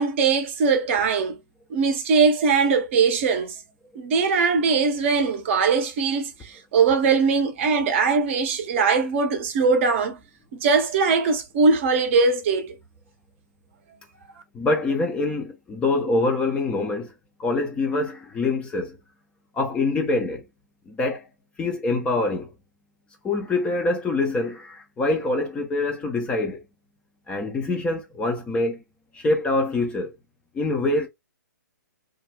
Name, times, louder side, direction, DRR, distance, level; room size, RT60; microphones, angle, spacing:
voice 1, 0.0-1.4 1.7-3.5 4.0-10.2 10.5-12.8, right 5 dB, 40° right, 0.6 m, -21 dB
voice 2, 14.5-17.1 17.4-19.0 19.5-20.4 20.9-21.3 21.6-22.5 23.2-26.6 27.3-28.8 29.1-30.1 30.5-31.1, left 2 dB, 10° left, 0.4 m, -25 dB
2.3 x 2.0 x 3.2 m
figure-of-eight pair, 125°, 10 cm